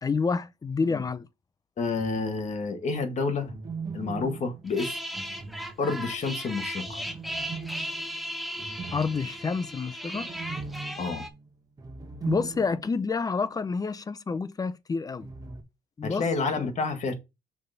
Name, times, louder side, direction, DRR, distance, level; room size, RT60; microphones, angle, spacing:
voice 1, 0.0-1.3 8.9-10.3 12.3-15.3 16.0-16.3, left 4 dB, 20° left, 0.6 m, -28 dB
voice 2, 1.8-3.5 3.9-5.0 5.8-7.0 11.0-11.3 16.0-17.1, left 4 dB, 45° left, 1.8 m, -29 dB
sound 1, 1.9-2.7 3.4-6.2 6.8-13.1 13.3-13.4 15.2-15.6, right 5 dB, 20° right, 1.3 m, -40 dB
sound 2, 4.7-11.3, equal, ahead, 1.0 m, -36 dB
6.4 x 3.4 x 5.7 m
cardioid pair, 110°, 17 cm